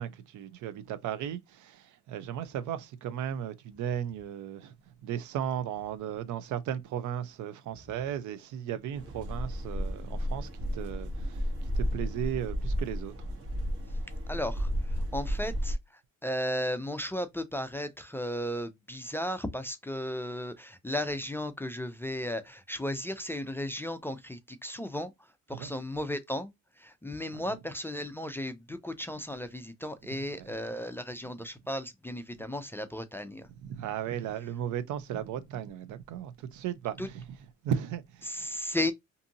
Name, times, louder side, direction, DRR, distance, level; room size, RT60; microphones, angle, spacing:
voice 1, 0.0-13.2 25.5-25.7 27.3-27.6 30.3-30.5 33.5-37.4 37.6-38.6, right 9 dB, 80° right, 0.5 m, -36 dB
sound 1, 8.9-15.7, equal, 50° right, 1.1 m, -33 dB
voice 2, 14.3-25.1 25.5-26.5 26.8-33.5 37.0-37.1 38.2-38.9, left 1 dB, 10° left, 0.3 m, -35 dB
2.6 x 2.5 x 2.6 m
cardioid pair, 90°, 30 cm